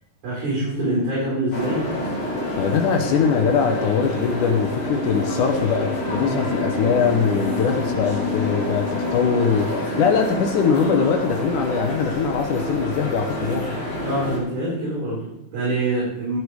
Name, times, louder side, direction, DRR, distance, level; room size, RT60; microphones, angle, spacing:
voice 1, 0.2-1.9 3.0-3.1 14.0-16.4, right 1 dB, 65° right, -6 dB, 6.4 m, -25 dB
sound 1, 1.5-14.4, equal, 40° left, 4.0 m, -27 dB
voice 2, 2.6-13.8, left 6 dB, 75° left, 5 dB, 1.9 m, -22 dB
14.5 x 8.4 x 4.9 m, 0.86 s
omnidirectional pair, 4.7 m